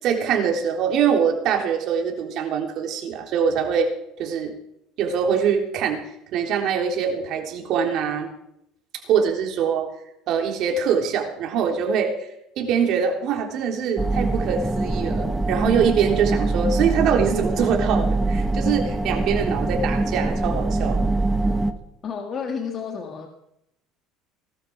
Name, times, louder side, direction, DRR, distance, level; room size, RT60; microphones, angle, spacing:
voice 1, 0.0-3.9 4.2-4.5 5.0-6.0 6.3-8.3 9.1-9.8 10.3-12.3 12.6-21.0, right 7 dB, 55° right, 2 dB, 3.5 m, -23 dB
sound 1, 14.0-21.7, right 2 dB, 10° right, 1.2 m, -23 dB
voice 2, 22.0-23.3, left 6 dB, 35° left, 3 dB, 1.8 m, -30 dB
19.5 x 12.5 x 4.8 m, 0.80 s
cardioid pair, 125°, 0 cm